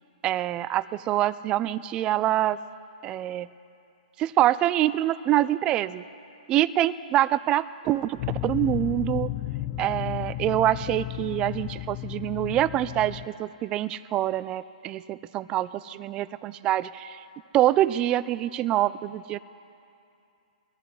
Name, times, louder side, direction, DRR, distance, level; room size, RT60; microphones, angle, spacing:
voice 1, 0.2-2.6 3.0-3.5 4.2-6.0 6.5-9.3 9.8-17.2 17.5-19.4, right 13 dB, 20° right, 15 dB, 0.3 m, -25 dB
sound 1, 8.2-13.3, left 16 dB, 35° left, 0.6 m, -33 dB
22.5 x 13.5 x 3.2 m, 2.6 s
hypercardioid pair, 145°, 4 cm